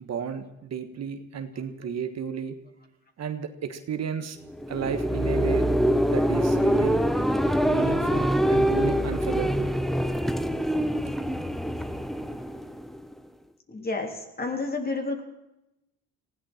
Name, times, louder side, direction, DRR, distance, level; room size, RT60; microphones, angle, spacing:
voice 1, 0.0-2.6 3.2-4.4 4.7-5.7 6.1-7.0 7.7-9.7, right 7 dB, 60° right, 8 dB, 1.7 m, -33 dB
sound 1, 4.5-13.1, equal, ahead, 1.0 m, -24 dB
voice 2, 13.7-15.2, left 3 dB, 30° left, 3 dB, 3.7 m, -30 dB
19.5 x 16.5 x 4.5 m, 0.91 s
cardioid pair, 90°, 30 cm